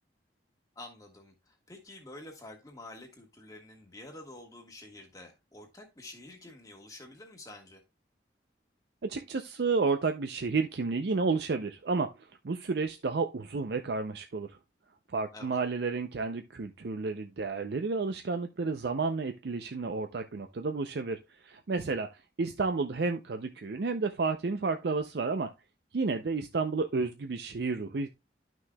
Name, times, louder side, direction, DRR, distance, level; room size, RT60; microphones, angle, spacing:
voice 1, 0.7-7.8 15.3-15.6, left 2 dB, 20° left, 1.3 m, -48 dB
voice 2, 9.0-14.6 15.1-25.5 25.9-28.1, right 4 dB, 70° right, 0.5 m, -31 dB
11.5 x 6.1 x 2.2 m
head